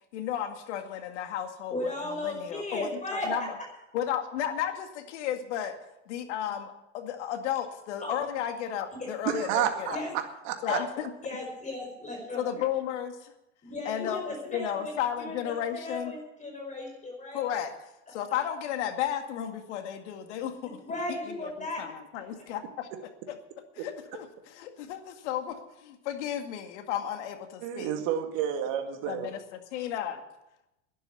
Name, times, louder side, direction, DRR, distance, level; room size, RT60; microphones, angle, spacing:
voice 1, 0.1-2.9 3.3-3.4 3.9-5.8 6.1-10.0 10.6-11.1 12.4-13.1 13.9-16.1 17.3-17.7 18.1-20.8 21.8-23.4 23.8-27.9 29.1-30.2, left 10 dB, 70° left, 2.1 m, -33 dB
voice 2, 1.7-3.3 8.0-8.2 8.9-9.1 9.9-10.1 11.2-12.4 13.6-17.4 20.6-21.8 22.1-22.2, left 2 dB, 20° left, 5.0 m, -36 dB
voice 3, 9.3-10.0 10.5-10.8 23.8-23.9 27.6-29.3, right 10 dB, 60° right, 2.1 m, -30 dB
11.5 x 11.0 x 8.2 m
hypercardioid pair, 100°, 37 cm